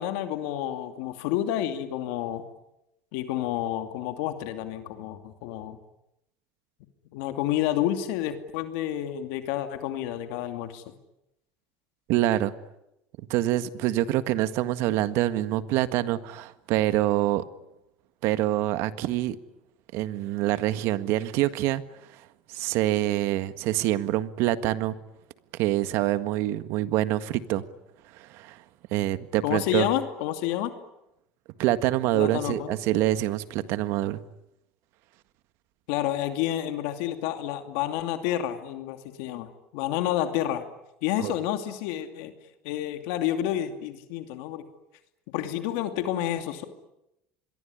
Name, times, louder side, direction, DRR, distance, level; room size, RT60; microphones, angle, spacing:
voice 1, 0.0-2.4 3.1-5.8 7.1-10.9 29.4-30.7 32.1-32.7 35.9-40.6 41.0-42.3 42.6-44.7 45.3-46.6, left 12 dB, 80° left, 7 dB, 2.7 m, -29 dB
voice 2, 12.1-12.5 13.2-17.4 18.2-19.4 19.9-21.8 22.5-24.9 25.6-27.6 28.1-28.6 28.9-29.9 31.6-34.2 41.2-41.3, right 14 dB, 70° right, 12 dB, 1.7 m, -26 dB
27.0 x 22.5 x 10.0 m, 0.87 s
cardioid pair, 125°, 5 cm